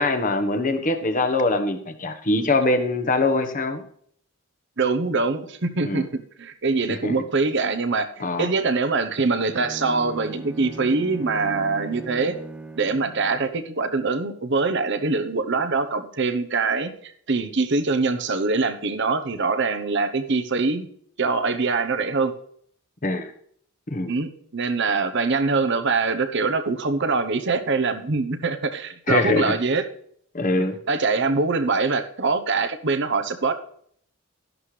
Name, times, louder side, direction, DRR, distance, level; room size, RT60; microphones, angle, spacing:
voice 1, 0.0-3.8 5.8-6.1 6.9-7.2 8.2-8.5 23.0-23.3 23.9-24.1 29.1-29.5 30.3-30.8, left 2 dB, 40° left, 7 dB, 1.2 m, -23 dB
voice 2, 4.8-12.4 12.8-20.9 21.2-22.3 24.1-29.9 30.6-33.5, right 4 dB, 55° right, 9 dB, 0.9 m, -24 dB
Bowed string instrument, 9.5-13.5, right 2 dB, 5° right, 1.1 m, -38 dB
13.0 x 11.0 x 3.3 m, 0.65 s
head